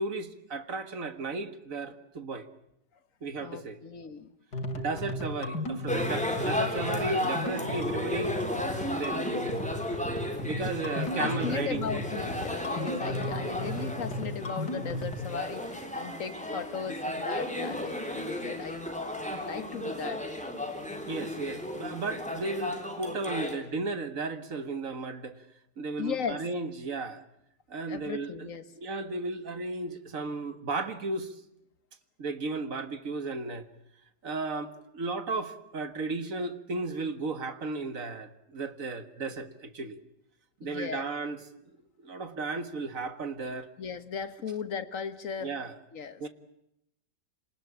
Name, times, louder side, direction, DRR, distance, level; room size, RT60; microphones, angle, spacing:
voice 1, 0.0-2.5 3.2-3.8 4.8-8.4 8.9-9.5 10.4-12.0 21.1-25.4 25.8-27.2 27.7-31.4 32.2-33.7 34.2-40.0 40.6-41.4 41.7-43.7 45.4-45.7 46.2-46.3, right 3 dB, 50° right, 2.1 m, -35 dB
voice 2, 3.4-4.4 10.6-10.7 11.2-18.9 19.3-20.2 26.0-26.4 27.9-28.6 40.6-41.1 43.8-45.6 45.9-46.2, left 7 dB, 50° left, 1.7 m, -37 dB
sound 1, 4.5-15.2, left 1 dB, 75° left, 3.2 m, -36 dB
sound 2, 5.9-23.5, left 1 dB, 5° left, 3.7 m, -34 dB
27.5 x 19.5 x 8.6 m
omnidirectional pair, 1.8 m